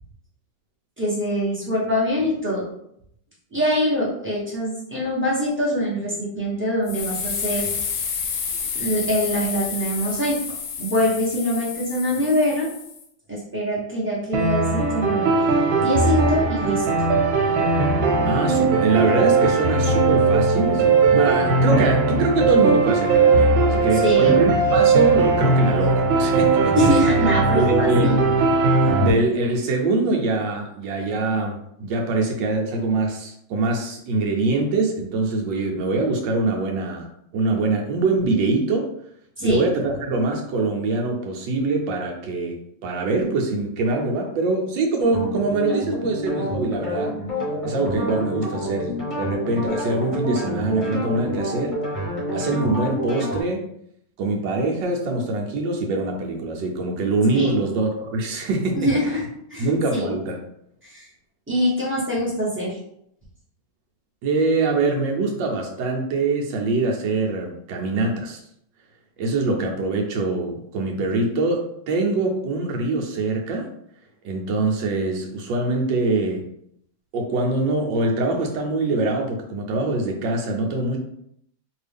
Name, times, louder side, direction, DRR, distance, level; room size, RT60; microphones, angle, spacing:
voice 1, 1.0-2.7 3.5-7.7 8.8-10.4 10.8-12.7 13.3-15.3 15.8-16.8 23.9-24.5 26.7-28.2 39.4-39.6 57.3-57.5 58.7-59.2 59.5-60.2 60.8-61.1 61.5-62.8, equal, 10° right, -7 dB, 0.8 m, -24 dB
sound 1, 6.9-13.0, left 6 dB, 75° left, 0.9 m, -30 dB
sound 2, 14.3-29.1, right 3 dB, 90° right, 1.5 m, -19 dB
voice 2, 18.3-26.7 27.5-28.1 29.0-37.1 37.3-38.9 39.4-47.1 47.6-51.8 52.3-53.6 54.2-58.8 59.6-60.4 64.2-68.4 69.2-73.7 74.2-76.5 77.1-81.0, right 3 dB, 75° right, 2 dB, 1.3 m, -23 dB
sound 3, 45.0-53.4, equal, 25° left, 0.9 m, -28 dB
3.1 x 2.7 x 3.4 m, 0.72 s
omnidirectional pair, 2.1 m